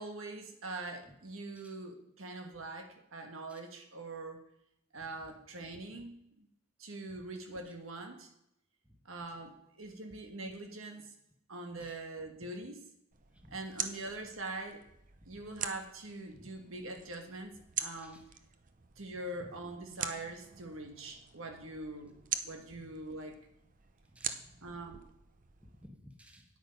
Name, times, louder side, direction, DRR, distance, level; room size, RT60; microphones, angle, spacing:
voice 1, 0.0-4.4 4.9-6.5 6.8-8.3 9.0-11.1 11.5-12.8 13.5-14.8 15.2-18.2 19.0-22.1 22.4-23.4 24.6-25.1, right 2 dB, 90° right, 4 dB, 1.5 m, -43 dB
sound 1, 13.1-25.9, right 8 dB, 40° right, 0.7 m, -44 dB
voice 2, 24.1-24.6 25.6-26.4, equal, 5° right, 3 dB, 1.2 m, -56 dB
9.3 x 8.4 x 5.3 m, 0.77 s
head